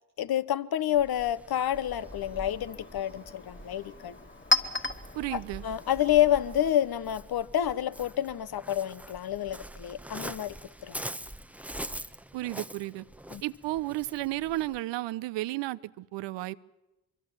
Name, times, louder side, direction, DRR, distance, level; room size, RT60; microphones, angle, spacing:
voice 1, 0.2-4.2 5.3-10.6 10.8-11.0 13.3-13.4, left 11 dB, 50° left, 1.2 m, -28 dB
Waves surf, 0.9-14.8, right 1 dB, 5° right, 1.1 m, -44 dB
Chink clink, 1.6-7.1, left 2 dB, 25° left, 2.5 m, -35 dB
voice 2, 5.1-5.6 12.3-13.0 13.4-16.5, right 17 dB, 65° right, 0.9 m, -33 dB
24.5 x 24.0 x 7.3 m
hypercardioid pair, 50°, 48 cm